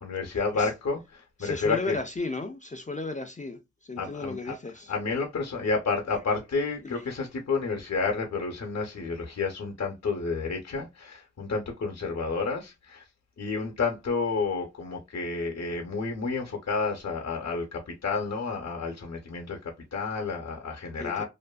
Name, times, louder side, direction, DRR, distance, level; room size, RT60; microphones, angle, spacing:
voice 1, 0.0-2.0 4.0-4.5 4.9-13.0 13.4-19.6 19.9-21.2, left 4 dB, 65° left, 0.6 m, -30 dB
voice 2, 1.4-4.9 6.8-7.2 21.0-21.2, left 2 dB, 25° left, 0.4 m, -35 dB
2.5 x 2.5 x 2.2 m
wide cardioid pair, 50°, 29 cm